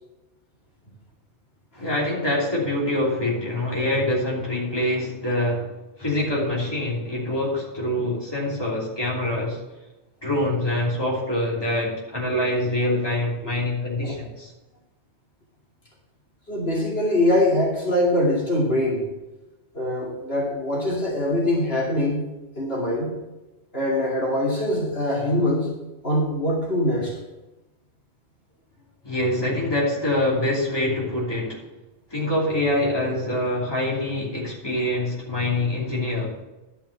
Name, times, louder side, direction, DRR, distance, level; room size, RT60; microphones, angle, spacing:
voice 1, 1.8-5.7 6.0-9.6 10.2-14.5 29.0-31.6 32.1-36.3, left 1 dB, 20° left, -4 dB, 2.9 m, -25 dB
voice 2, 16.5-19.0 19.7-22.2 22.6-23.1 23.7-25.7 26.0-27.1, left 1 dB, 60° left, -4 dB, 2.7 m, -23 dB
11.5 x 5.6 x 6.7 m, 1.0 s
omnidirectional pair, 1.1 m